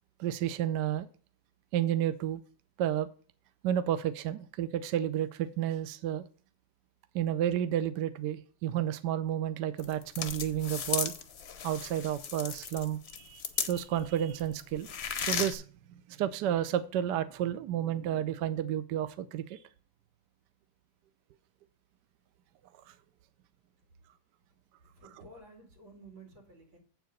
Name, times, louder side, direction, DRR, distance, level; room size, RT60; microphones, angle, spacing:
voice 1, 0.2-1.1 1.7-2.4 2.8-3.1 3.6-6.2 7.1-11.1 11.6-14.9 15.2-15.6 16.1-19.6 22.9-23.0 25.0-25.1, right 11 dB, 70° right, 12 dB, 1.1 m, -31 dB
sound 1, 9.8-14.1 14.4-15.5, left 7 dB, 55° left, 0.7 m, -35 dB
voice 2, 25.0-26.8, right 2 dB, 90° right, 2 dB, 3.4 m, -53 dB
8.2 x 4.8 x 6.4 m, 0.39 s
omnidirectional pair, 2.1 m